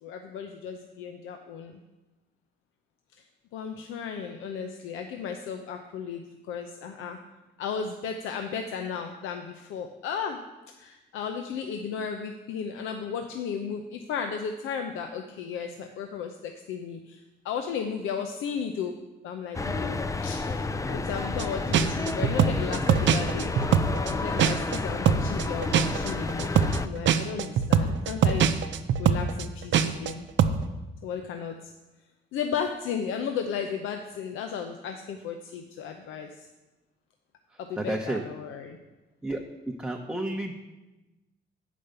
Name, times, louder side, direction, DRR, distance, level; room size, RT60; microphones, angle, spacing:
voice 1, 0.0-1.8 3.5-7.2 7.6-10.4 10.8-19.0 19.2-23.6 24.0-26.5 26.8-28.5 29.0-30.3 31.0-31.7 32.3-36.5 37.6-38.8, left 6 dB, 90° left, 5 dB, 0.7 m, -34 dB
sound 1, 19.5-26.9, left 3 dB, 15° left, 0.4 m, -31 dB
sound 2, 21.4-21.5 21.7-24.8 25.1-30.1 30.4-30.6, right 8 dB, 70° right, 0.6 m, -22 dB
voice 2, 37.8-38.2 39.2-40.5, right 1 dB, 5° right, 1 dB, 0.9 m, -31 dB
8.7 x 5.1 x 6.7 m, 1.1 s
cardioid pair, 90°, 20 cm